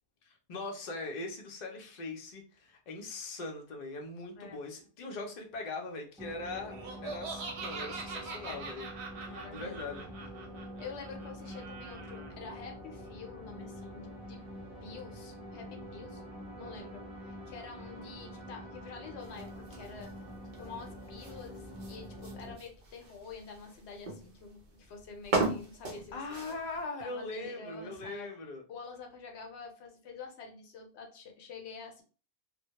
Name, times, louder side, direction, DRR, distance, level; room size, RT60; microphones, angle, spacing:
voice 1, 0.2-6.7 7.0-8.9 9.5-10.1 26.1-28.6, left 3 dB, 55° left, 2 dB, 0.6 m, -41 dB
sound 1, 6.2-22.5, equal, 5° right, 0.6 m, -46 dB
Laughter, 6.7-12.3, right 4 dB, 80° right, 0.9 m, -43 dB
voice 2, 9.3-9.9 10.8-14.4 14.8-16.2 16.6-20.1 20.6-26.2 27.0-28.3 28.7-32.0, left 4 dB, 80° left, 3 dB, 0.9 m, -47 dB
sound 2, 19.2-26.8, right 2 dB, 50° right, 0.7 m, -39 dB
2.1 x 2.0 x 2.8 m, 0.37 s
omnidirectional pair, 1.1 m